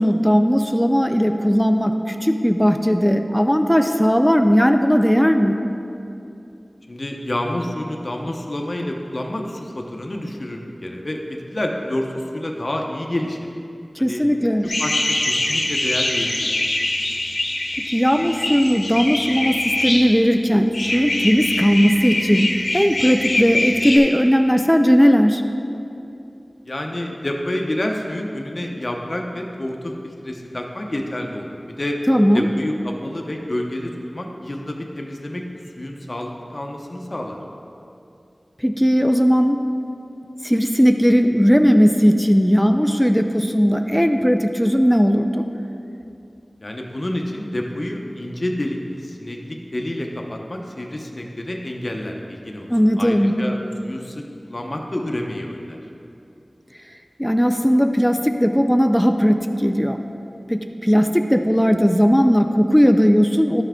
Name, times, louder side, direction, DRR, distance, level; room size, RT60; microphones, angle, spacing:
voice 1, 0.0-5.6 14.0-14.7 17.9-25.4 32.1-32.5 38.6-39.6 40.4-45.5 52.7-53.4 57.2-60.0 60.5-63.6, equal, 5° left, 5 dB, 0.4 m, -17 dB
voice 2, 6.9-13.4 14.0-14.2 14.6-16.5 26.6-32.0 32.3-35.4 35.8-37.4 46.6-52.7 53.0-55.8, left 1 dB, 45° left, 1 dB, 0.8 m, -28 dB
sound 1, 14.7-20.1 20.7-24.0, left 1 dB, 80° left, 0.9 m, -23 dB
11.5 x 5.7 x 3.7 m, 2.7 s
wide cardioid pair, 60°, 0 cm